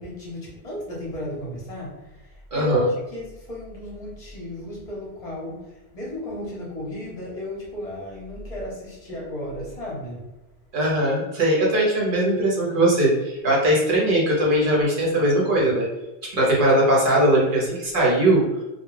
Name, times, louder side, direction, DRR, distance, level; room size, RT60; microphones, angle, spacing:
voice 1, 0.0-5.6 5.9-10.2, equal, 40° left, -4 dB, 0.9 m, -34 dB
voice 2, 2.5-2.9 10.7-15.9 16.3-18.4, right 1 dB, 60° right, -4 dB, 0.8 m, -20 dB
2.2 x 2.1 x 3.1 m, 1.0 s
omnidirectional pair, 1.1 m